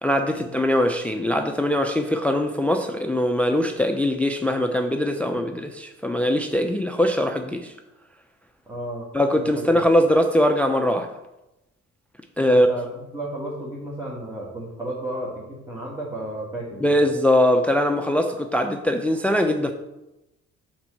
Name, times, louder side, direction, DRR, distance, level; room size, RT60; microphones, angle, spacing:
voice 1, 0.0-7.7 9.1-11.1 12.4-12.7 16.8-19.7, left 1 dB, 5° left, 6 dB, 0.5 m, -21 dB
voice 2, 8.6-9.1 9.4-9.7 12.5-17.0, right 1 dB, 10° right, -4 dB, 1.7 m, -33 dB
6.0 x 4.4 x 6.3 m, 0.97 s
cardioid pair, 90°, 30 cm